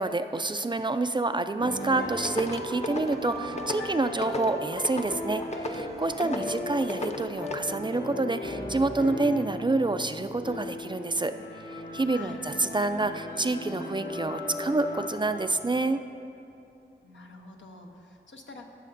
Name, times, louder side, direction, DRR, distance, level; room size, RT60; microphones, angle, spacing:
voice 1, 0.0-16.0, right 2 dB, 25° right, 9 dB, 0.3 m, -28 dB
sound 1, 1.6-15.5, left 1 dB, 60° left, 1.2 m, -37 dB
sound 2, 1.9-7.6, left 2 dB, 35° left, 0.6 m, -37 dB
voice 2, 6.2-6.5 12.1-12.4 17.0-18.7, left 3 dB, 80° left, 2 dB, 0.8 m, -45 dB
15.0 x 6.6 x 2.6 m, 2.7 s
cardioid pair, 40°, 19 cm